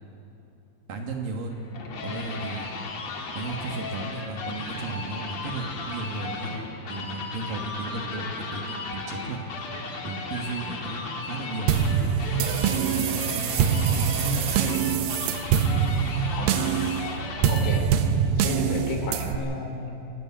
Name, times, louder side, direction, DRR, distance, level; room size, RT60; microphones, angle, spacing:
voice 1, 0.9-1.5 2.0-2.7 3.4-9.4 10.0-11.7 12.6-14.9, right 3 dB, 60° right, 2 dB, 2.7 m, -35 dB
sound 1, 1.5-18.0, left 3 dB, 50° left, 2.4 m, -35 dB
sound 2, 11.7-19.4, right 7 dB, 85° right, 2.0 m, -24 dB
voice 2, 16.3-16.7 17.5-17.9 18.4-19.9, left 3 dB, 90° left, 2 dB, 5.3 m, -33 dB
25.5 x 12.0 x 8.6 m, 2.9 s
omnidirectional pair, 5.1 m